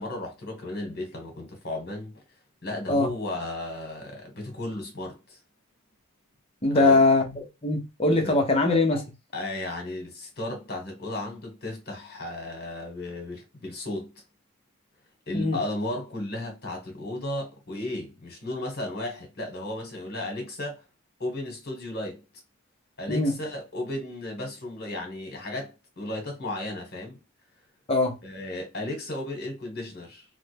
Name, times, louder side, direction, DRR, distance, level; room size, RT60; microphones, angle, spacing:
voice 1, 0.0-2.2 2.6-5.4 6.7-7.0 8.2-8.4 8.9-9.0 9.3-14.1 15.3-20.8 21.2-22.2 23.0-27.2 28.2-30.2, left 1 dB, 45° left, 1.3 m, -34 dB
voice 2, 6.6-9.0 15.3-15.6 23.1-23.3 27.9-28.1, left 2 dB, 25° left, 0.8 m, -22 dB
3.5 x 2.2 x 3.3 m
head